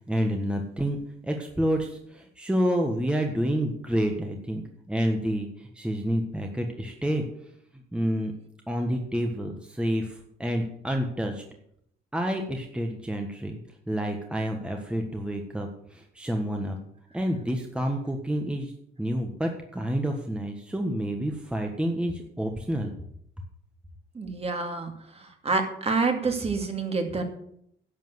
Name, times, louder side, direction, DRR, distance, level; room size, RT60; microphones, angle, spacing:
voice 1, 0.1-1.0 1.2-4.6 4.9-7.2 7.9-8.3 8.7-11.4 12.1-13.6 13.9-16.8 17.1-18.7 19.0-22.9, equal, 5° right, 3 dB, 1.4 m, -28 dB
voice 2, 24.1-24.9 25.4-27.2, right 4 dB, 30° right, 4 dB, 2.5 m, -27 dB
11.5 x 7.5 x 8.0 m, 0.70 s
cardioid pair, 115°, 20 cm